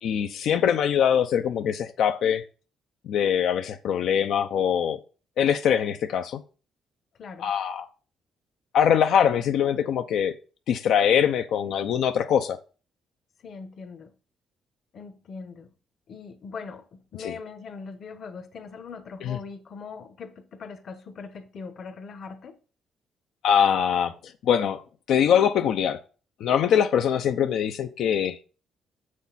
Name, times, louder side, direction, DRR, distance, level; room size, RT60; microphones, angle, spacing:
voice 1, 0.0-2.4 3.1-5.0 5.4-6.4 7.4-7.9 8.7-10.3 10.7-12.6 17.2-17.3 19.2-19.4 23.4-24.1 24.4-24.8 25.1-26.0 26.4-28.4, left 8 dB, 75° left, 0.6 m, -23 dB
voice 2, 7.2-7.5 13.4-14.1 14.9-15.7 16.1-22.5, left 5 dB, 55° left, 1.1 m, -41 dB
7.2 x 6.5 x 4.0 m
cardioid pair, 90°, 0 cm